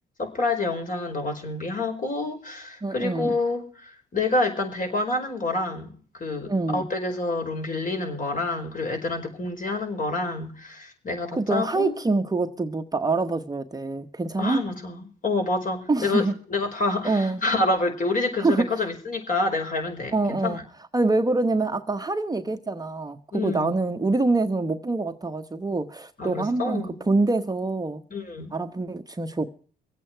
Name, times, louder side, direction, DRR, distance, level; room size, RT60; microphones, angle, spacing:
voice 1, 0.2-11.9 14.4-20.5 23.3-23.7 26.2-27.0 28.1-28.5, left 2 dB, 45° left, 4.9 m, -28 dB
voice 2, 2.8-3.4 6.5-6.9 11.4-14.6 15.9-16.4 17.0-17.4 18.4-18.7 20.1-20.6 20.9-28.0 28.5-29.5, right 3 dB, 20° right, 1.1 m, -25 dB
24.5 x 8.5 x 4.5 m
cardioid pair, 90°, 20 cm